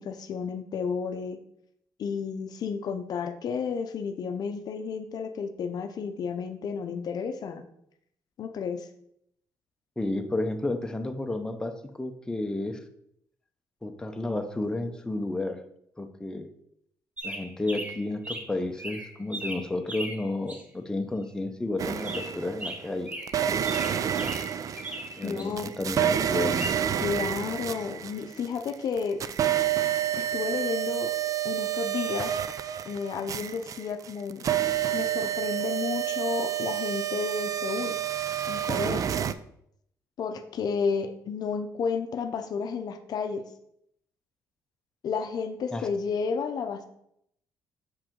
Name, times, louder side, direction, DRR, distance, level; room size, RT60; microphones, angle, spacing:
voice 1, 0.0-1.4 2.0-7.7 8.4-8.9 25.2-25.7 27.0-29.2 30.2-31.1 31.4-32.3 32.8-34.5 34.9-38.0 38.5-39.0 40.2-43.4 45.0-46.8, left 5 dB, 60° left, 8 dB, 0.6 m, -32 dB
voice 2, 10.0-12.8 13.8-15.6 16.0-16.5 17.2-23.1 25.2-26.7 45.7-45.9, left 2 dB, 10° left, 5 dB, 0.7 m, -31 dB
sound 1, 17.2-18.5 18.8-20.6 22.0-25.5 26.6-26.7, right 1 dB, 20° right, 1.1 m, -38 dB
sound 2, 21.8-22.7 23.3-28.7 29.0-39.3, right 10 dB, 45° right, 0.3 m, -29 dB
6.3 x 4.8 x 3.7 m, 0.73 s
cardioid pair, 95°, 8 cm